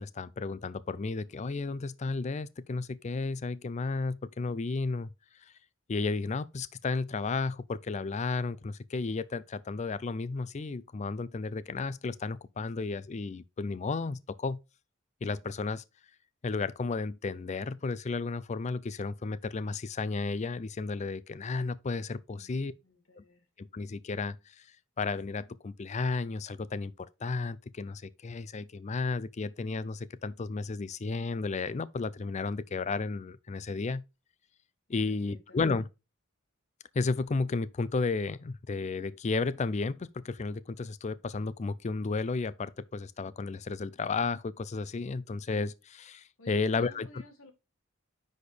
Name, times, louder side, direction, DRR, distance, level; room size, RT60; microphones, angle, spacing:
voice 1, 0.0-5.1 5.9-14.6 15.2-15.8 16.4-22.7 23.2-23.3 23.6-24.4 25.0-34.0 34.9-35.9 36.9-47.1, left 4 dB, 35° left, 0.4 m, -33 dB
voice 2, 22.3-23.5 34.9-35.6 46.4-47.5, left 2 dB, 80° left, 1.8 m, -53 dB
9.7 x 4.3 x 3.3 m
head